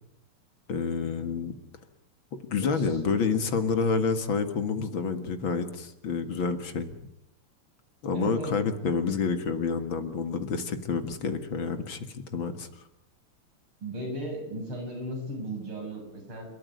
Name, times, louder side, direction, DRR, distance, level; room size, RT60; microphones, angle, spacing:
voice 1, 0.7-1.5 2.3-6.9 8.0-12.7, left 5 dB, 65° left, 9 dB, 2.5 m, -28 dB
voice 2, 8.1-8.5 13.8-16.5, right 1 dB, 75° right, 1 dB, 8.5 m, -36 dB
29.0 x 13.5 x 9.4 m, 0.81 s
omnidirectional pair, 2.4 m